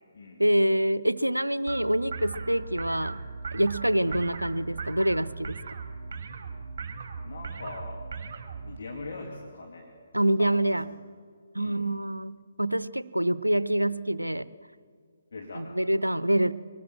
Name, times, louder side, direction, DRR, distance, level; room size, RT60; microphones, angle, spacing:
voice 1, 0.4-3.2 3.5-5.6 10.1-10.8 11.5-14.5 15.5-16.5, right 1 dB, 90° right, 18 dB, 0.7 m, -26 dB
sound 1, 1.7-8.8, right 4 dB, 40° right, 2.2 m, -38 dB
voice 2, 7.2-8.0 8.6-9.9 10.4-11.0 11.6-11.9 15.3-15.7, left 3 dB, 55° left, 0 dB, 2.8 m, -41 dB
23.5 x 19.5 x 7.6 m, 2.2 s
figure-of-eight pair, 140°, 0 cm